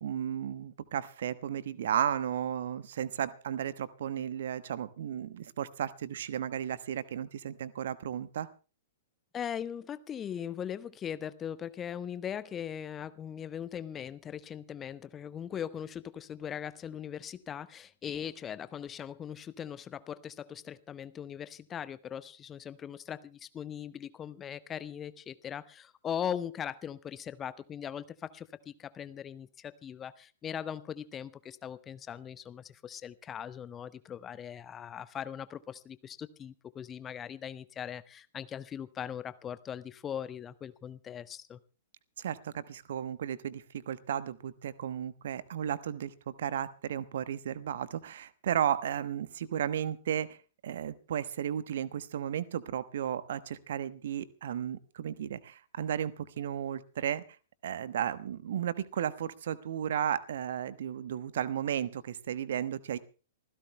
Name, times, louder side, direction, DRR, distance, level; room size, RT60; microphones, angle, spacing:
voice 1, 0.0-8.5 42.2-50.4 50.6-57.2 57.6-63.0, right 9 dB, 55° right, 15 dB, 1.0 m, -34 dB
voice 2, 9.3-41.6, left 9 dB, 20° left, 16 dB, 0.6 m, -40 dB
26.5 x 16.0 x 2.2 m, 0.36 s
figure-of-eight pair, 105°, 0 cm